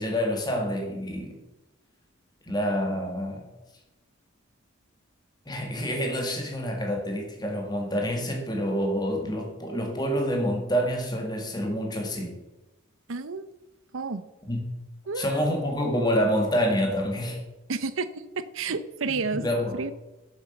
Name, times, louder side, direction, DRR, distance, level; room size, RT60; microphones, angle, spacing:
voice 1, 0.0-1.3 2.5-3.4 5.5-12.4 14.5-14.7 15.2-17.4 19.3-19.8, equal, 20° left, 2 dB, 2.0 m, -27 dB
voice 2, 13.1-13.5 13.9-14.2 15.1-15.4 17.7-18.1 18.4-19.4 19.7-19.9, right 4 dB, 75° right, 13 dB, 0.7 m, -30 dB
8.3 x 7.5 x 6.7 m, 1.0 s
head